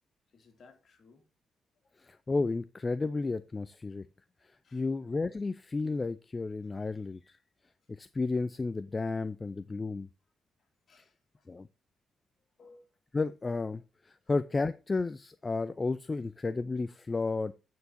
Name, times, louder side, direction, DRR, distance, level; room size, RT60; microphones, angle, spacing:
voice 1, 0.3-1.3 1.8-2.0 4.6-4.9 6.6-6.7 10.6-11.5 12.6-12.9 14.2-14.3 16.1-16.3, left 3 dB, 55° left, 2.2 m, -61 dB
voice 2, 2.0-4.1 4.4-7.4 7.9-10.1 11.5-11.7 13.1-17.5, left 3 dB, 25° left, 0.4 m, -32 dB
9.3 x 4.6 x 4.2 m
cardioid pair, 80°, 0 cm